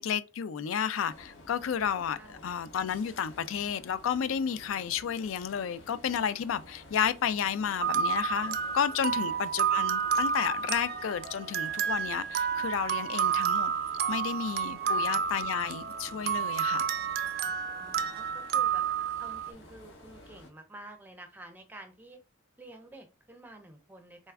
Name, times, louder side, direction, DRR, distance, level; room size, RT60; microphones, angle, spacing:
voice 1, 0.0-13.7 14.1-16.9, left 8 dB, 75° left, 0.4 m, -32 dB
sound 1, 1.1-20.5, left 1 dB, 60° left, 1.1 m, -52 dB
sound 2, 7.8-19.5, right 7 dB, 50° right, 0.3 m, -30 dB
voice 2, 9.1-9.5 14.8-15.1 17.7-18.8 19.2-22.2 22.6-24.3, right 1 dB, 10° right, 0.7 m, -50 dB
4.1 x 2.3 x 3.3 m
head